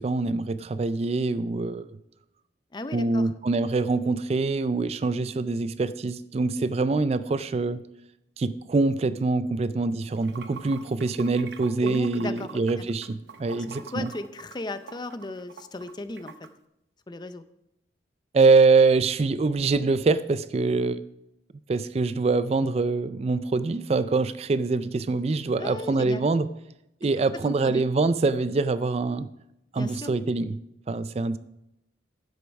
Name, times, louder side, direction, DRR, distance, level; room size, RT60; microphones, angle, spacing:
voice 1, 0.0-1.9 2.9-7.8 8.4-14.1 18.3-21.0 21.7-26.5 27.0-29.3 29.7-30.6 30.9-31.4, right 3 dB, 35° right, 14 dB, 0.3 m, -24 dB
voice 2, 2.7-3.3 11.8-12.9 13.6-16.3 17.1-17.4 25.6-26.3 27.2-27.9 29.7-30.1, left 2 dB, 25° left, 12 dB, 0.5 m, -36 dB
Water / Sink (filling or washing), 10.0-16.5, right 5 dB, 70° right, 0.7 m, -45 dB
10.5 x 7.8 x 5.2 m, 0.85 s
head